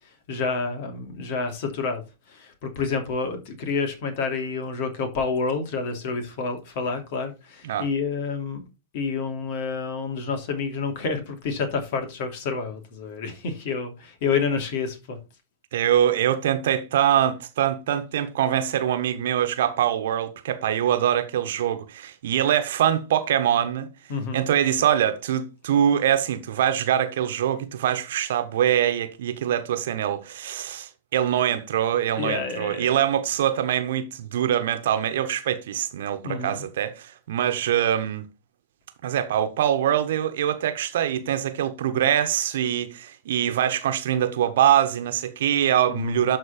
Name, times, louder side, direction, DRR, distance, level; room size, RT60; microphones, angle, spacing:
voice 1, 0.3-8.6 8.9-15.2 24.1-24.5 32.2-33.0 36.2-36.6 45.9-46.2, left 5 dB, 55° left, 2.8 m, -29 dB
voice 2, 15.7-23.9 24.3-38.2 39.0-46.4, right 10 dB, 65° right, 1.3 m, -23 dB
12.5 x 4.3 x 4.3 m
figure-of-eight pair, 95°, 0 cm